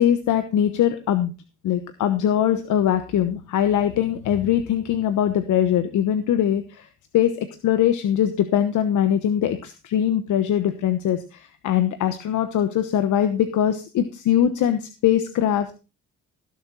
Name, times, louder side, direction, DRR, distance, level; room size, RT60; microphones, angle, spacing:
voice 1, 0.0-1.3 1.6-6.9 7.1-15.7, left 10 dB, 75° left, 9 dB, 1.2 m, -22 dB
17.0 x 7.3 x 4.1 m, 0.30 s
cardioid pair, 90°, 30 cm